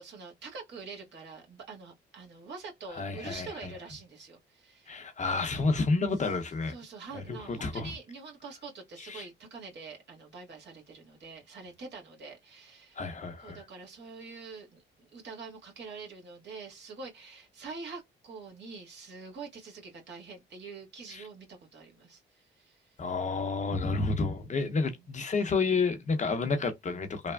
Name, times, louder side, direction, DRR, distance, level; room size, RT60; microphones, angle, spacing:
voice 1, 0.0-5.0 6.2-6.3 6.7-13.0 13.4-23.0 24.5-25.1, right 4 dB, 60° right, 1.6 m, -45 dB
voice 2, 2.9-3.7 4.9-6.7 7.1-7.9 9.0-9.2 13.0-13.6 21.1-21.2 23.0-27.3, left 4 dB, 40° left, 0.8 m, -30 dB
3.3 x 2.0 x 2.2 m
cardioid pair, 90°, 20 cm